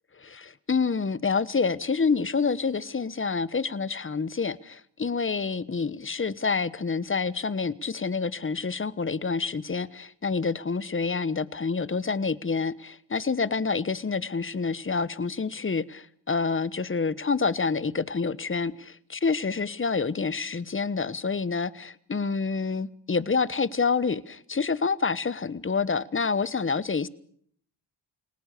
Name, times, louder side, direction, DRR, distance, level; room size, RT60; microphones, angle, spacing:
voice 1, 0.2-27.1, left 4 dB, 25° left, 1.1 m, -28 dB
29.5 x 18.5 x 6.8 m
supercardioid pair, 55°, 46 cm